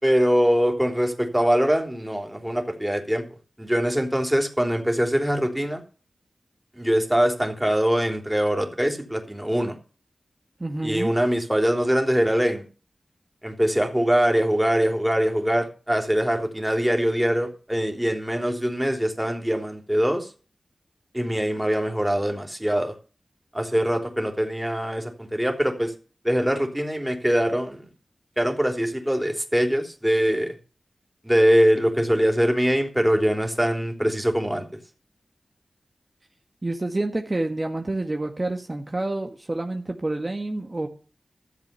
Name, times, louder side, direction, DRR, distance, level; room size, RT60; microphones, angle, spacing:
voice 1, 0.0-3.2 3.6-5.8 6.7-9.7 10.8-12.6 13.4-20.3 21.1-22.9 23.5-25.9 26.2-27.9 28.4-30.5 31.2-34.6, equal, 10° right, 4 dB, 3.4 m, -23 dB
voice 2, 10.6-11.1 36.6-40.9, right 2 dB, 40° right, 3 dB, 1.7 m, -28 dB
13.5 x 7.7 x 6.8 m, 0.37 s
cardioid pair, 45°, 0 cm